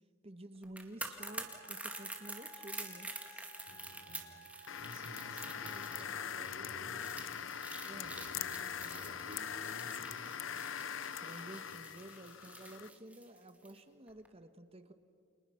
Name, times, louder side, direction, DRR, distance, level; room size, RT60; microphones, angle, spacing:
voice 1, 0.2-3.1 7.8-8.1 11.2-14.9, right 1 dB, 30° right, 10 dB, 1.3 m, -51 dB
sound 1, 0.6-13.8 14.1-14.3, right 2 dB, 5° right, 2.1 m, -47 dB
Wind instrument woodwind instrument, 1.1-6.4, left 1 dB, 15° left, 4.4 m, -57 dB
voice 2, 3.3-7.6 8.0-10.3 11.7-11.8, right 1 dB, 75° right, -1 dB, 6.1 m, -53 dB
sound 2, 4.7-12.9, left 8 dB, 75° left, 0.7 m, -42 dB
30.0 x 28.0 x 5.8 m, 2.3 s
head